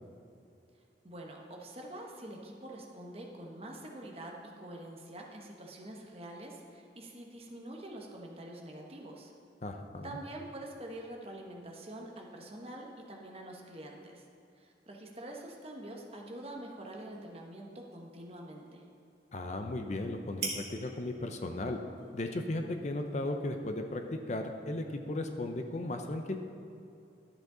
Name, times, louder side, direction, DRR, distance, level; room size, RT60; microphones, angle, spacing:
voice 1, 1.0-9.3 10.0-14.2 14.6-18.9, right 1 dB, 35° right, 0 dB, 1.1 m, -46 dB
voice 2, 9.6-10.1 19.3-21.8 22.1-26.4, left 2 dB, 40° left, 5 dB, 0.6 m, -36 dB
sound 1, 16.1-23.8, right 4 dB, 70° right, 2.0 m, -48 dB
12.0 x 7.8 x 3.8 m, 2.7 s
head